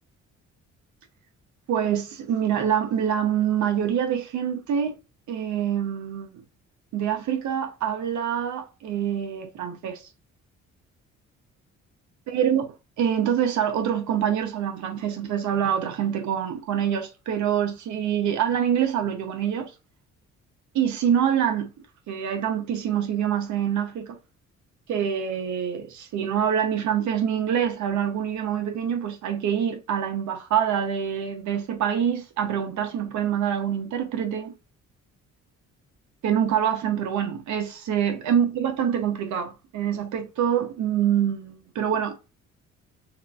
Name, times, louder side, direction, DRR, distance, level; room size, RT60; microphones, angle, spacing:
voice 1, 1.7-4.9 5.3-6.4 6.9-10.1 12.3-12.7 13.0-19.7 20.7-21.7 22.1-24.2 24.9-34.5 36.2-42.4, right 9 dB, 70° right, 0.7 m, -25 dB
6.3 x 2.5 x 2.3 m
cardioid pair, 90°, 30 cm